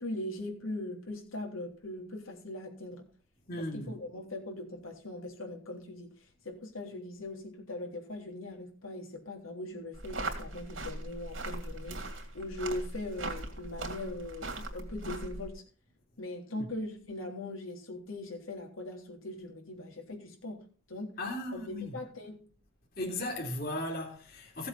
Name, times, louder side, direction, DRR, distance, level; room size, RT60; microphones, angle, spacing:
voice 1, 0.0-3.0 3.6-6.1 6.4-15.6 16.2-21.2 21.5-22.4, left 1 dB, 80° left, 3.6 m, -40 dB
voice 2, 3.5-3.9 16.6-16.7 21.2-22.0 23.0-24.7, left 1 dB, 45° left, 3.2 m, -36 dB
sound 1, 9.9-15.5, right 2 dB, 70° right, 2.8 m, -39 dB
16.0 x 7.7 x 4.2 m
head